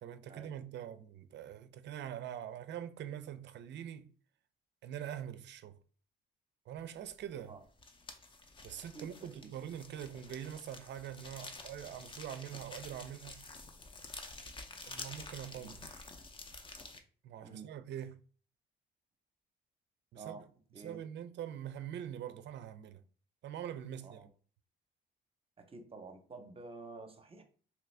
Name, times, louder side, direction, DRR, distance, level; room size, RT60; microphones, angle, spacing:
voice 1, 0.0-4.1 4.8-5.8 6.7-7.5 8.6-13.5 14.9-16.0 17.2-18.2 20.1-20.5 20.8-23.0 23.4-24.2, right 10 dB, 60° right, 0.4 m, -44 dB
sound 1, 7.1-7.3 7.6-17.0, left 3 dB, 25° left, 0.5 m, -49 dB
voice 2, 8.9-9.5 15.5-15.7 17.4-17.7 20.2-20.5 20.7-21.0 24.0-24.3 25.6-27.4, right 4 dB, 30° right, 0.7 m, -50 dB
2.9 x 2.5 x 3.2 m
cardioid pair, 90°, 20 cm